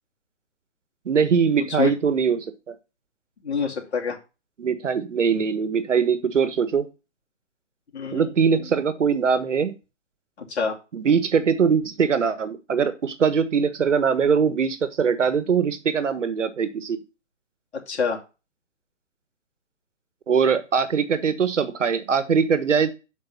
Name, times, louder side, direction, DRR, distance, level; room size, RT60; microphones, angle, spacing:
voice 1, 1.0-2.7 4.6-6.9 8.1-9.7 10.9-17.0 20.3-22.9, right 6 dB, 75° right, 12 dB, 1.4 m, -22 dB
voice 2, 3.4-4.2 7.9-8.3 10.5-10.8 17.7-18.2, left 6 dB, 60° left, 0 dB, 2.7 m, -26 dB
6.8 x 5.3 x 5.6 m, 0.29 s
hypercardioid pair, 160°, 37 cm